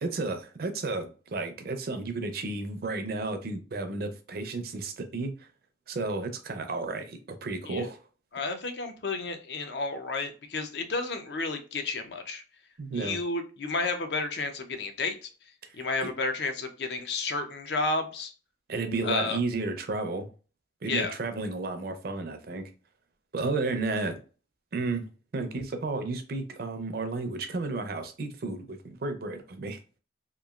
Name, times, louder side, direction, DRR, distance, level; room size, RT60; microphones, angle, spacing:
voice 1, 0.0-5.5 5.9-8.0 12.8-13.2 16.0-16.1 18.7-20.3 20.8-22.7 23.3-24.2 24.7-25.1 25.3-29.8, right 3 dB, 55° right, 0.5 m, -32 dB
voice 2, 8.3-12.4 12.9-15.3 15.8-18.3 19.0-19.4 20.9-21.1, left 3 dB, 65° left, 0.5 m, -31 dB
3.0 x 2.4 x 2.3 m
head